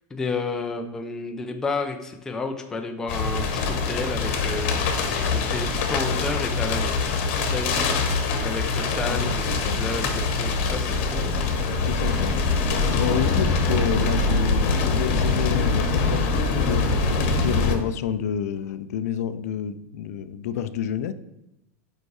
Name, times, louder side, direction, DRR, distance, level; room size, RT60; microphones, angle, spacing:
voice 1, 0.1-9.4 9.8-11.3, left 3 dB, 5° left, 4 dB, 0.4 m, -31 dB
sound 1, 3.1-17.8, left 3 dB, 45° left, 1.0 m, -23 dB
voice 2, 9.0-9.8 11.9-12.4 12.9-21.1, left 9 dB, 75° left, 13 dB, 0.4 m, -29 dB
5.2 x 4.8 x 4.7 m, 0.86 s
supercardioid pair, 175°, 9 cm